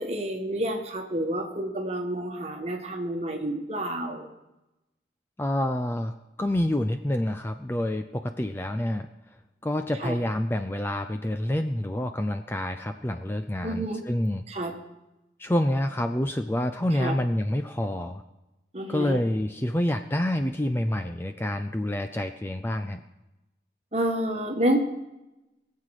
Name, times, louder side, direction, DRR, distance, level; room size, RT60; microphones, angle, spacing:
voice 1, 0.0-4.3 10.0-10.1 13.6-14.0 14.5-14.7 17.0-17.2 18.7-19.2 23.9-24.8, right 1 dB, 35° right, 3 dB, 1.5 m, -29 dB
voice 2, 5.4-9.1 9.6-14.4 15.4-18.2 18.9-23.0, left 1 dB, 15° left, 8 dB, 0.4 m, -27 dB
22.0 x 7.5 x 4.9 m, 0.98 s
head